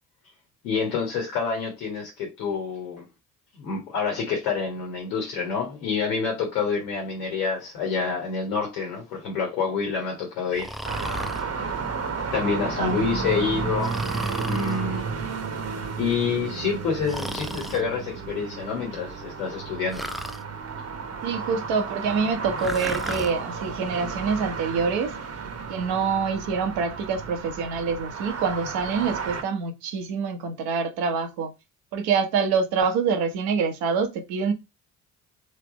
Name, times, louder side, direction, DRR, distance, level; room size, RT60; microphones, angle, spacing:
voice 1, 0.6-3.0 3.5-10.7 11.4-11.5 12.3-14.0 14.4-15.1 15.9-20.1, left 5 dB, 90° left, 1.4 m, -27 dB
Breathing, 10.5-11.5 13.8-14.8 17.1-17.8 19.9-20.4 22.6-23.3, equal, ahead, 0.3 m, -34 dB
sound 1, 10.8-29.4, right 5 dB, 45° right, 1.1 m, -32 dB
voice 2, 21.2-25.1 25.7-31.5 31.9-34.5, right 5 dB, 75° right, 1.0 m, -26 dB
3.4 x 3.2 x 4.8 m
hypercardioid pair, 50°, 36 cm